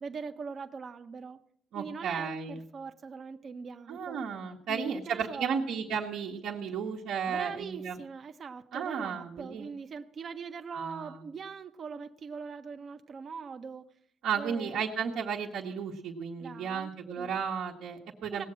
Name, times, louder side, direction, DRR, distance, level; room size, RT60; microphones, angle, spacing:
voice 1, 0.0-1.4 1.7-4.2 4.7-5.6 7.3-13.9 14.3-14.8 16.4-16.9 17.2-17.4 18.3-18.5, right 5 dB, 50° right, 6 dB, 0.7 m, -41 dB
voice 2, 1.7-2.6 3.9-8.0 8.7-9.7 10.7-11.2 14.2-18.5, right 6 dB, 80° right, -4 dB, 1.2 m, -34 dB
18.0 x 7.6 x 6.2 m, 0.72 s
cardioid pair, 90°, 0 cm